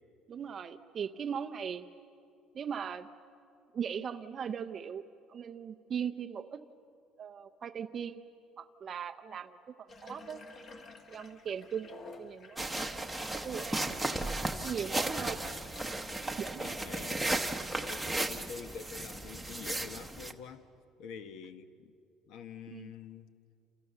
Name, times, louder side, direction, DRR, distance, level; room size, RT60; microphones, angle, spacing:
voice 1, 0.3-1.9 2.5-3.1 3.7-5.0 5.3-6.6 7.2-8.2 8.6-10.4 11.1-11.9 12.2-15.5 16.1-16.8 22.7-22.9, right 7 dB, 25° right, 9 dB, 0.6 m, -39 dB
Water tap faucet / Bathtub (filling or washing), 9.9-16.4, left 3 dB, 25° left, 1.5 m, -52 dB
sound 1, 12.6-20.3, right 2 dB, ahead, 1.0 m, -35 dB
voice 2, 16.6-17.3 17.7-20.7 21.0-21.9 22.3-23.3, left 7 dB, 55° left, 10 dB, 1.2 m, -46 dB
29.0 x 28.5 x 6.8 m, 2.6 s
cardioid pair, 180°, 0 cm